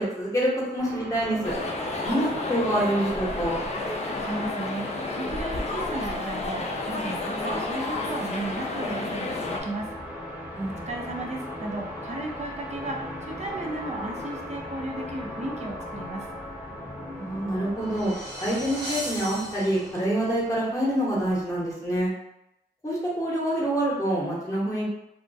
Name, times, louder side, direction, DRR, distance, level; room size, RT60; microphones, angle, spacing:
voice 1, 0.0-1.5 2.0-3.6 10.5-10.8 17.1-18.1 18.4-22.1 22.8-24.9, right 1 dB, 20° left, -5 dB, 0.8 m, -26 dB
sound 1, 0.8-20.7, left 1 dB, 10° right, 0.7 m, -39 dB
sound 2, 1.4-9.6, left 2 dB, 40° left, 0.4 m, -31 dB
voice 2, 4.2-4.9 5.2-9.9 10.9-16.3, right 2 dB, 40° right, 0 dB, 0.5 m, -34 dB
sound 3, 17.4-20.3, equal, 85° right, 0.8 m, -38 dB
2.3 x 2.1 x 2.6 m, 0.85 s
cardioid pair, 55°, 17 cm